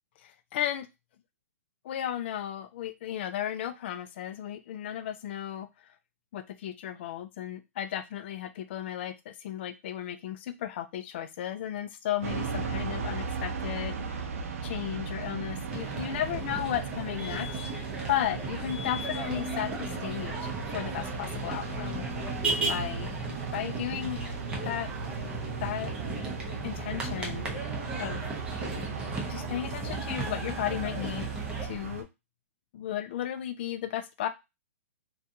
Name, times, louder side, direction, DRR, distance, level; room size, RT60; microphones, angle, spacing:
voice 1, 0.2-0.9 1.8-5.7 6.3-14.3 14.6-17.5 17.7-22.1 22.7-23.1 23.5-24.2 24.6-24.9 25.6-25.9 26.6-27.5 28.0-28.2 29.3-31.3 31.6-32.1 32.7-34.3, left 11 dB, 45° left, 11 dB, 0.3 m, -34 dB
sound 1, 12.2-32.0, right 5 dB, 60° right, 0.6 m, -37 dB
sound 2, 15.7-31.7, right 2 dB, 10° right, 0.6 m, -36 dB
2.5 x 2.2 x 2.7 m, 0.24 s
hypercardioid pair, 145°, 8 cm